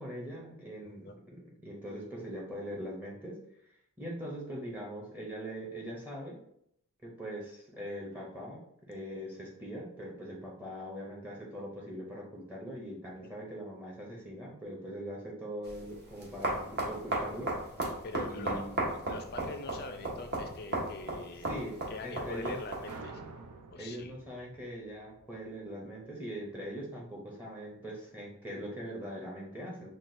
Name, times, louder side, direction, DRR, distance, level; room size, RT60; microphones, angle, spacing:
voice 1, 0.0-3.4 4.0-6.4 7.0-17.5 18.3-18.7 21.4-21.8 22.0-22.6 23.7-29.9, equal, 10° right, -3 dB, 0.7 m, -41 dB
sound 1, 15.6-23.0, right 2 dB, 45° right, 1.0 m, -36 dB
voice 2, 18.0-21.5 21.9-23.2 23.7-24.1, left 2 dB, 45° left, 6 dB, 0.4 m, -43 dB
sound 2, 22.8-26.1, right 3 dB, 80° right, 0.6 m, -49 dB
5.8 x 2.3 x 2.6 m, 0.73 s
head